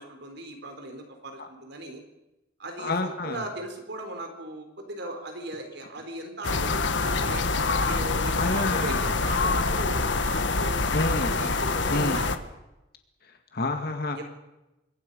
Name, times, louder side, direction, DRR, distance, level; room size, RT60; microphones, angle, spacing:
voice 1, 0.0-2.0 2.6-7.5 7.8-12.3 14.1-14.2, right 1 dB, 60° right, 5 dB, 3.9 m, -38 dB
voice 2, 2.8-3.4 8.4-9.0 10.9-11.4 11.9-12.2 13.5-14.2, left 2 dB, 55° left, 5 dB, 2.0 m, -28 dB
sound 1, 6.4-12.4, left 3 dB, 70° left, 1.5 m, -26 dB
26.5 x 22.5 x 5.5 m, 0.97 s
head